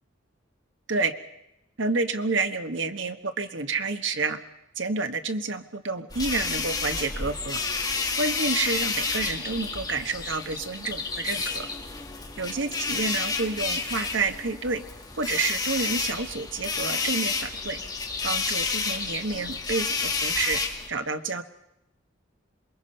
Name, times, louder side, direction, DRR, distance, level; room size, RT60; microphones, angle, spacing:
voice 1, 1.8-4.4 4.8-7.6 8.2-11.7 12.4-14.8 15.2-17.8 18.2-20.6 20.9-21.4, right 3 dB, 75° right, 8 dB, 1.3 m, -29 dB
sound 1, 6.1-20.9, left 4 dB, 20° left, 1.7 m, -30 dB
27.0 x 21.5 x 5.6 m, 0.87 s
head